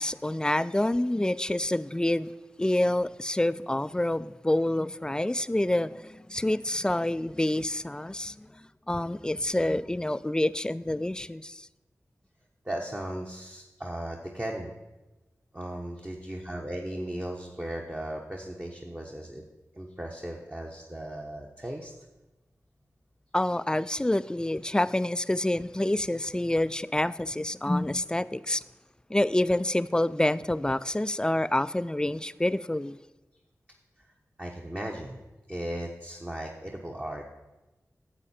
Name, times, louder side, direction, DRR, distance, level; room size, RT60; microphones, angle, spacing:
voice 1, 0.0-2.3 2.6-11.7 23.3-28.6 29.1-33.0, left 1 dB, 15° left, 0.3 m, -27 dB
voice 2, 12.6-14.7 15.5-19.4 19.7-21.9 34.4-35.2 35.5-37.2, right 1 dB, 20° right, 1.0 m, -36 dB
9.9 x 7.4 x 4.3 m
cardioid pair, 40°, 6 cm